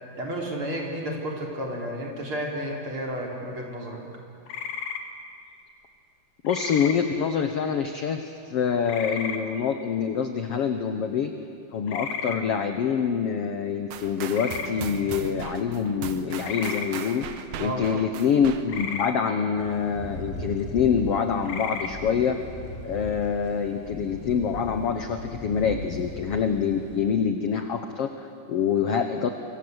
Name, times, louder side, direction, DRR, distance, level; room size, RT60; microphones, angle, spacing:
voice 1, 0.2-4.0 17.6-18.0, equal, 40° right, -1 dB, 4.4 m, -32 dB
sound 1, 4.5-5.0 6.5-7.0 8.9-9.4 11.9-12.4 14.3-14.7 16.4-16.9 18.7-19.1 21.5-21.9, left 7 dB, 90° left, 3.5 m, -33 dB
voice 2, 6.4-11.3 11.7-17.3 17.6-22.4 22.8-29.3, left 7 dB, 65° left, 6 dB, 1.6 m, -26 dB
sound 2, 13.9-19.0, right 8 dB, 65° right, 2.2 m, -38 dB
Thunder / Rain, 19.6-27.0, left 1 dB, 20° left, 4.2 m, -38 dB
26.5 x 25.0 x 8.1 m, 2.4 s
omnidirectional pair, 4.0 m